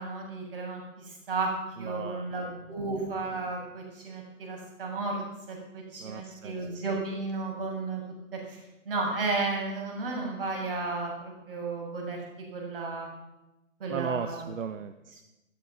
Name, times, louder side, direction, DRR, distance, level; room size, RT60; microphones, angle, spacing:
voice 1, 0.0-1.5 1.8-8.0 8.3-12.2 12.5-13.1 13.8-14.5, right 3 dB, 45° right, 0 dB, 7.2 m, -33 dB
voice 2, 1.8-2.3 6.0-6.6 13.9-15.2, right 6 dB, 75° right, 11 dB, 1.1 m, -36 dB
14.0 x 13.5 x 6.3 m, 1.0 s
hypercardioid pair, 160°, 39 cm